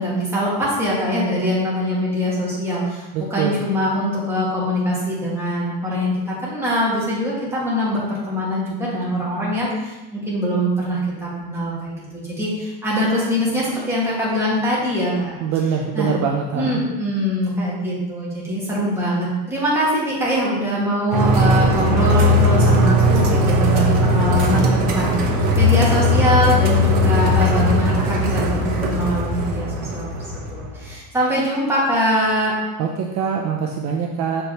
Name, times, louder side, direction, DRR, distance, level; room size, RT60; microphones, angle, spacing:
voice 1, 0.0-15.3 15.9-16.1 16.5-32.5, equal, 5° right, -7 dB, 1.8 m, -23 dB
voice 2, 3.1-3.6 15.4-16.8 32.8-34.4, right 6 dB, 50° right, 1 dB, 0.6 m, -23 dB
sound 1, 21.1-30.9, left 1 dB, 80° right, 1.2 m, -18 dB
6.7 x 5.1 x 2.9 m, 1.1 s
cardioid pair, 160°, 36 cm